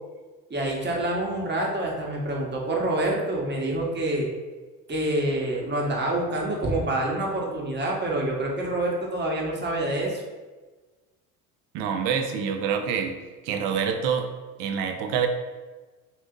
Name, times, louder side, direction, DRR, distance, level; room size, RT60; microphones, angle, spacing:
voice 1, 0.5-4.3 4.9-10.2, right 1 dB, 25° right, -2 dB, 0.9 m, -27 dB
voice 2, 11.7-13.2 13.4-14.3 14.6-15.3, right 7 dB, 70° right, 5 dB, 0.6 m, -26 dB
2.7 x 2.4 x 3.6 m, 1.3 s
hypercardioid pair, 80°, 41 cm